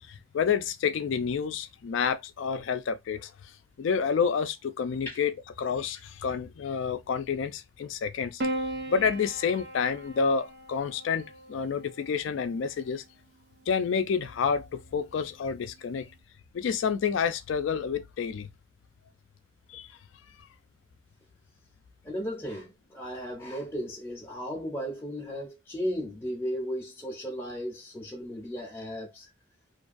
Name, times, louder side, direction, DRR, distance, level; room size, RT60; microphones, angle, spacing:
voice 1, 0.1-3.3 3.8-5.3 5.6-8.4 8.9-11.2 11.5-13.0 13.7-16.1 16.5-18.5 19.7-19.9, left 6 dB, 70° left, 0.3 m, -29 dB
Piano, 8.4-12.9 14.1-14.7, right 1 dB, 55° right, 0.6 m, -38 dB
voice 2, 22.0-29.3, equal, 10° left, 0.6 m, -35 dB
2.6 x 2.3 x 2.4 m
head